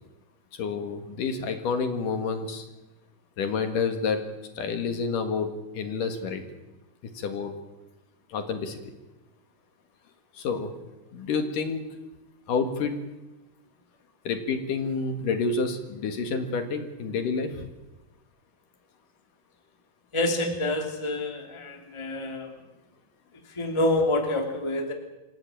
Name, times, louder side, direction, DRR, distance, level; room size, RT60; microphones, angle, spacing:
voice 1, 0.5-2.7 3.4-4.2 4.5-5.5 5.7-6.4 7.1-7.5 8.3-8.8 10.3-10.7 11.1-11.8 12.5-13.0 14.2-17.7, left 5 dB, 65° left, 7 dB, 3.2 m, -29 dB
voice 2, 20.1-22.5 23.5-24.9, left 1 dB, 10° left, 3 dB, 2.2 m, -27 dB
26.5 x 16.0 x 9.1 m, 1.0 s
omnidirectional pair, 4.4 m